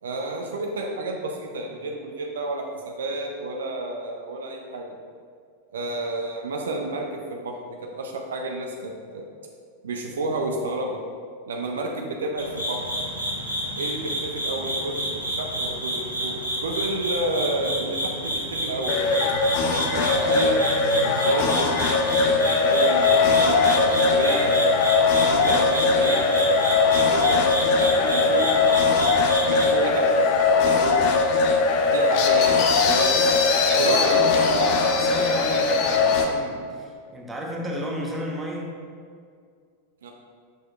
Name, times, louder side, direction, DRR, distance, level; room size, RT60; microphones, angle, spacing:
voice 1, 0.0-4.9 5.7-9.2 9.8-11.0 11.5-12.8 13.8-18.9 19.9-20.6 21.0-24.5 25.1-26.2 26.9-28.5 28.7-31.0 31.9-33.2 33.8-34.8 40.0-40.1, right 2 dB, 65° right, 1 dB, 0.6 m, -30 dB
sound 1, 12.4-29.7, equal, 85° right, 1.1 m, -30 dB
sound 2, 18.9-36.2, left 4 dB, 45° left, 0.6 m, -20 dB
voice 2, 33.7-38.7, equal, 10° right, -2 dB, 1.1 m, -32 dB
6.6 x 6.2 x 2.5 m, 2.1 s
figure-of-eight pair, 90°, 0 cm